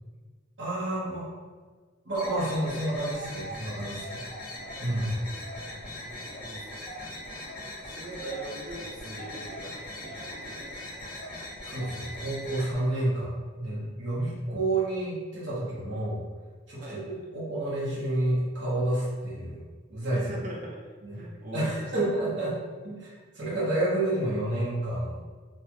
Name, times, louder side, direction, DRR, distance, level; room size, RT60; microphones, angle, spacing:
voice 1, 0.6-1.3 2.0-4.3 4.8-5.1 11.6-16.2 16.7-19.6 19.9-20.3 21.0-21.2 21.5-22.5 22.8-25.2, right 1 dB, 65° right, -8 dB, 1.2 m, -29 dB
sound 1, 2.1-12.8, left 1 dB, 45° left, 0.9 m, -40 dB
voice 2, 5.7-6.7 7.8-11.1 16.8-17.2 20.1-21.8, right 1 dB, 45° right, -3 dB, 0.5 m, -42 dB
3.3 x 2.3 x 3.0 m, 1.5 s
head